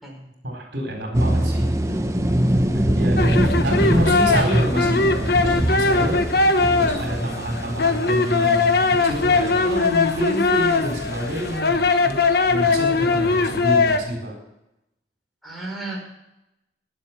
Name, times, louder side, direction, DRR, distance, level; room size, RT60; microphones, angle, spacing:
voice 1, 0.4-1.6 2.7-6.2 6.7-12.2 12.5-14.3, equal, 65° right, 1 dB, 4.2 m, -27 dB
sound 1, 1.1-11.6, equal, 15° right, 1.0 m, -24 dB
sound 2, 3.2-14.0, left 3 dB, 55° left, 1.1 m, -20 dB
voice 2, 15.4-16.1, right 2 dB, ahead, -2 dB, 5.0 m, -34 dB
21.0 x 7.7 x 6.0 m, 0.89 s
head